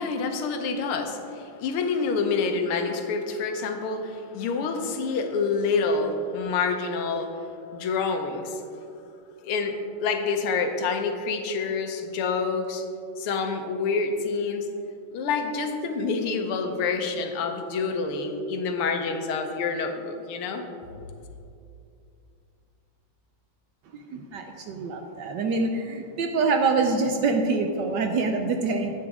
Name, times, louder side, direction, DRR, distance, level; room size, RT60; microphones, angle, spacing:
voice 1, 0.0-8.6 9.4-12.8 13.2-14.7 15.1-20.6, left 4 dB, 85° left, 6 dB, 1.7 m, -27 dB
voice 2, 23.9-28.9, right 4 dB, 70° right, 4 dB, 1.1 m, -25 dB
11.0 x 8.4 x 3.6 m, 2.6 s
omnidirectional pair, 2.3 m